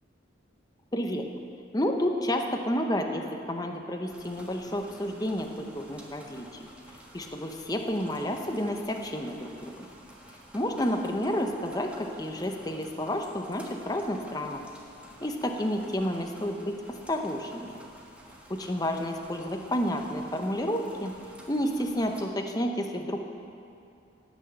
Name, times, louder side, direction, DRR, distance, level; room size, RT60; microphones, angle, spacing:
voice 1, 0.9-1.3 1.7-6.7 7.1-9.9 10.5-14.6 15.2-16.8 17.1-17.8 18.5-21.1 21.5-23.2, equal, 20° left, 4 dB, 0.9 m, -30 dB
sound 1, 4.1-22.2, equal, 5° right, 1.4 m, -51 dB
17.5 x 6.4 x 7.7 m, 2.6 s
head